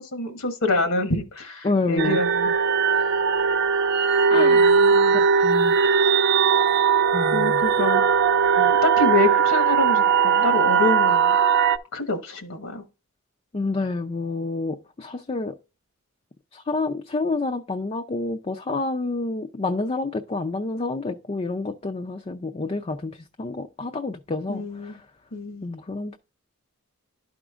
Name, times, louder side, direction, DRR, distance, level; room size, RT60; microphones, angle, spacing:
voice 1, 0.1-2.5 4.3-5.2 7.3-8.1 8.8-11.4 11.9-12.8 24.5-25.0 25.3-25.7, left 2 dB, 75° left, 1.1 m, -26 dB
voice 2, 1.6-2.2 4.3-4.7 5.1-5.8 7.1-7.6 8.6-8.7 13.5-15.6 16.5-25.0 25.6-26.2, left 3 dB, 30° left, 0.4 m, -28 dB
sound 1, 2.0-11.8, right 6 dB, 55° right, 0.5 m, -19 dB
11.5 x 5.0 x 2.4 m
head